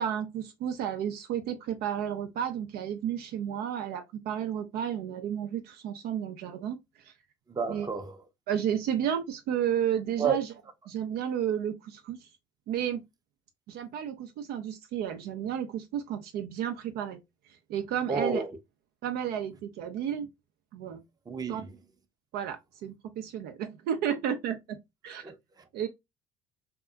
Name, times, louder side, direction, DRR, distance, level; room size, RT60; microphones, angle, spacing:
voice 1, 0.0-6.8 7.7-7.9 8.5-10.4 10.9-12.3 12.7-13.0 13.7-17.2 17.7-18.4 19.0-20.3 20.7-21.0 21.5-21.6 22.3-24.8 25.0-25.2 25.7-25.9, right 9 dB, 65° right, 0.5 m, -32 dB
voice 2, 7.5-8.2 10.2-10.4 18.1-18.5 21.3-21.8 25.2-25.6, right 5 dB, 20° right, 0.6 m, -31 dB
2.7 x 2.3 x 2.3 m
hypercardioid pair, 65°, 17 cm